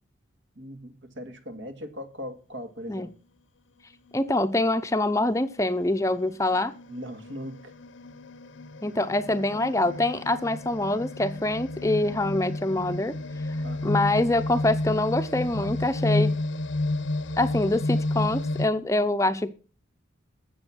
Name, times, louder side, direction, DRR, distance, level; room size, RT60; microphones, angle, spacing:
voice 1, 0.6-3.1 6.9-7.7 13.6-14.0, equal, 70° right, 2.0 m, -39 dB
sound 1, 4.1-4.3 4.9-18.7, left 2 dB, 80° left, 0.9 m, -31 dB
voice 2, 4.1-6.7 8.8-13.1 13.8-16.4 17.4-19.5, left 2 dB, 15° left, 0.6 m, -25 dB
13.0 x 8.0 x 6.2 m
head